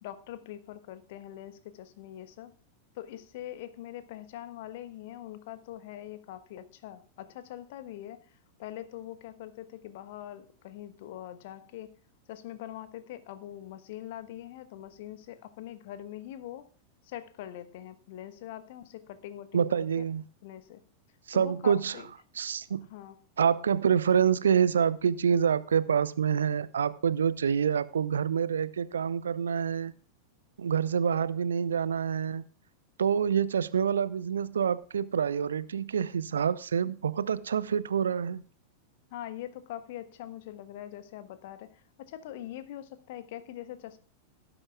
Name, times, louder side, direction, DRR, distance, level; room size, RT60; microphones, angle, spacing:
voice 1, 0.0-2.5 2.9-12.0 12.3-16.7 17.0-20.1 20.4-20.8 21.3-22.1 22.9-23.2 39.1-44.0, left 12 dB, 50° left, 1.2 m, -43 dB
voice 2, 19.5-20.2 21.3-22.0 22.4-22.9 23.4-29.9 30.6-32.5 33.0-38.4, right 7 dB, 70° right, 0.6 m, -27 dB
17.5 x 9.9 x 2.3 m
figure-of-eight pair, 90°, 0 cm